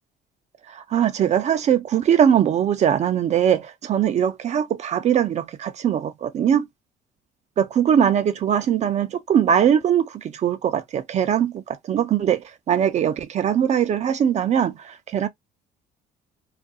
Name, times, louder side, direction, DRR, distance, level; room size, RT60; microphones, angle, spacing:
voice 1, 0.7-6.7 7.6-15.3, right 9 dB, 40° right, 0.4 m, -21 dB
2.4 x 2.1 x 2.6 m
cardioid pair, 110°, 17 cm